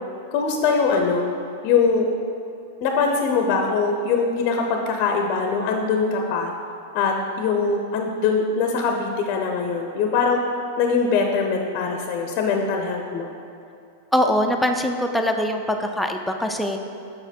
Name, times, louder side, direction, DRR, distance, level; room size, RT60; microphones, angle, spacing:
voice 1, 0.3-1.3 1.6-2.1 2.8-6.5 6.9-10.4 10.8-13.3, left 5 dB, 50° left, 3 dB, 0.6 m, -22 dB
voice 2, 14.1-16.8, equal, 5° left, 3 dB, 0.5 m, -22 dB
6.1 x 4.9 x 4.3 m, 2.5 s
hypercardioid pair, 120°, 0 cm